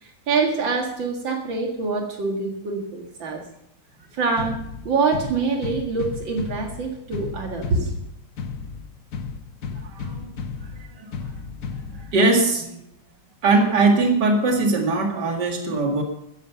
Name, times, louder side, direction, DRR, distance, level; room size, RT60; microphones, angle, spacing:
voice 1, 0.0-3.4 4.1-4.6 4.8-7.9, right 4 dB, 80° right, 1 dB, 2.6 m, -25 dB
sound 1, 4.4-12.4, left 5 dB, 50° left, 1.3 m, -34 dB
voice 2, 9.8-10.3 10.6-10.7 11.0-11.1 11.7-12.8 13.4-16.0, right 3 dB, 65° right, 2 dB, 2.7 m, -21 dB
15.0 x 10.5 x 5.9 m, 0.77 s
omnidirectional pair, 2.1 m